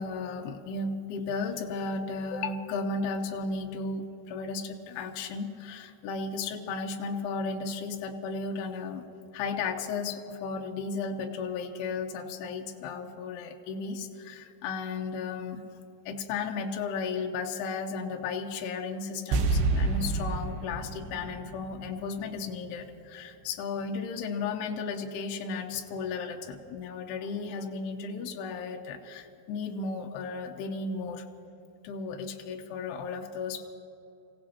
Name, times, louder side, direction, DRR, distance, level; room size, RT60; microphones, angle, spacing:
voice 1, 0.0-9.1 9.3-15.6 16.1-31.3 31.8-33.7, left 4 dB, 90° left, 3 dB, 2.3 m, -34 dB
sound 1, 19.3-22.5 22.8-22.9, right 3 dB, 75° right, 2.4 m, -29 dB
28.5 x 16.5 x 2.8 m, 3.0 s
omnidirectional pair, 5.8 m